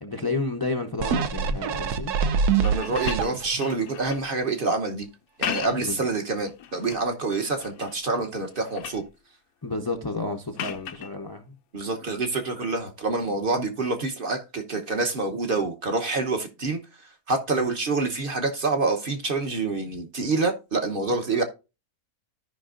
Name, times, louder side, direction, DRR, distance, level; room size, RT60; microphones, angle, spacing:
voice 1, 0.0-2.1 5.8-6.1 9.6-11.5, left 3 dB, 25° left, 0.4 m, -31 dB
sound 1, 1.0-3.7 4.2-4.3, right 6 dB, 85° right, 1.3 m, -25 dB
sound 2, 2.5-4.3 5.2-6.0 6.5-7.1 7.6-8.1 8.4-9.1 10.6-11.1 12.9-13.0, left 10 dB, 75° left, 1.1 m, -36 dB
voice 2, 2.6-5.1 5.4-9.0 11.7-16.8 17.3-21.4, right 3 dB, 40° right, 1.0 m, -27 dB
13.5 x 5.3 x 2.5 m
omnidirectional pair, 1.6 m